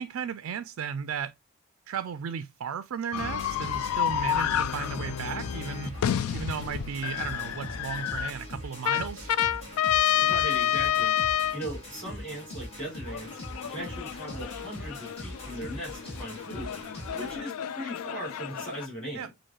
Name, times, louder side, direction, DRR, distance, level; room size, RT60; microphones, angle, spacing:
voice 1, 0.0-1.3 1.9-6.0 6.3-9.3 19.1-19.3, right 7 dB, 75° right, 0.3 m, -35 dB
sound 1, 3.1-8.3 8.8-11.6 13.1-18.9, left 10 dB, 90° left, 0.3 m, -29 dB
sound 2, 3.2-17.4, left 1 dB, 30° left, 2.1 m, -41 dB
voice 2, 10.2-11.2 11.5-13.4 13.7-19.3, equal, 5° left, 3.1 m, -39 dB
6.2 x 2.6 x 2.8 m
head